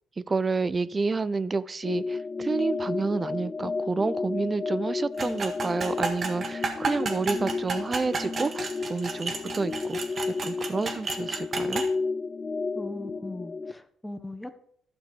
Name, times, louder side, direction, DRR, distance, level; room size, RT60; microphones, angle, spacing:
voice 1, 0.2-10.0 10.4-11.8, right 4 dB, 30° right, 17 dB, 0.4 m, -29 dB
sound 1, 1.8-13.7, left 4 dB, 35° left, 0.4 m, -32 dB
sound 2, 5.2-11.9, right 4 dB, 45° right, 1.7 m, -32 dB
voice 2, 12.7-14.5, left 1 dB, 5° left, 9 dB, 1.1 m, -39 dB
12.0 x 6.1 x 5.2 m, 0.66 s
cardioid pair, 90°, 0 cm